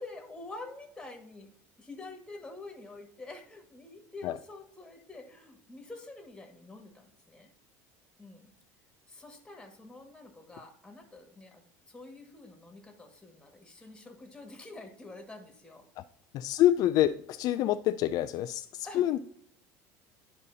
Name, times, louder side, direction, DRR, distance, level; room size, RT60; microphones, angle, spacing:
voice 1, 0.0-1.5 1.8-7.5 8.2-8.5 9.1-15.9 18.8-19.0, left 2 dB, 10° left, 3 dB, 1.9 m, -47 dB
voice 2, 16.3-19.2, left 12 dB, 55° left, 10 dB, 0.3 m, -27 dB
11.0 x 5.3 x 2.8 m, 0.66 s
supercardioid pair, 105°, 8 cm